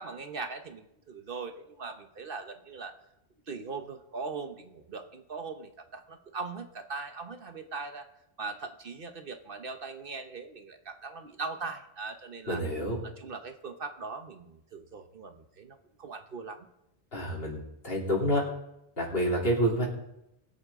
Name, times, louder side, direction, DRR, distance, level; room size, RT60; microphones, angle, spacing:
voice 1, 0.0-2.9 3.5-8.1 8.4-12.6 13.0-16.7, right 4 dB, 55° right, 7 dB, 1.1 m, -40 dB
voice 2, 12.5-13.0 17.1-18.4 19.0-19.9, equal, 60° left, -3 dB, 3.5 m, -28 dB
21.5 x 8.3 x 3.7 m, 0.83 s
omnidirectional pair, 1.1 m